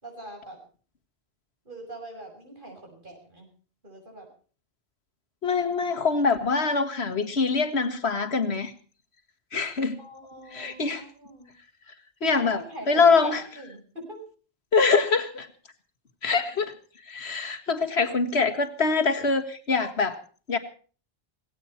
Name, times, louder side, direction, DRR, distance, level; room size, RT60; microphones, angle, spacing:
voice 1, 0.0-0.6 1.6-3.5 3.8-4.3 10.0-11.5 12.3-14.2, right 1 dB, 55° right, 2 dB, 6.3 m, -43 dB
voice 2, 5.4-8.7 9.5-10.0 10.5-11.0 12.2-12.6 12.9-13.4 14.7-15.5 16.2-16.7 17.1-20.2 20.5-20.6, left 4 dB, 90° left, 6 dB, 2.0 m, -24 dB
18.5 x 17.0 x 4.4 m, 0.40 s
omnidirectional pair, 1.1 m